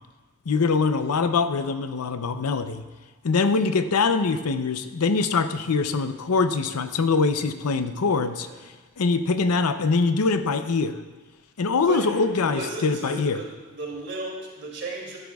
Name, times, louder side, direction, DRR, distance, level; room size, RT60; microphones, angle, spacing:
voice 1, 0.5-2.8 3.2-8.5 9.0-11.0 11.6-13.4, left 4 dB, 80° left, 10 dB, 0.6 m, -23 dB
voice 2, 8.3-8.6 11.9-15.2, right 3 dB, 55° right, -2 dB, 2.6 m, -35 dB
14.5 x 11.0 x 2.3 m, 1.3 s
head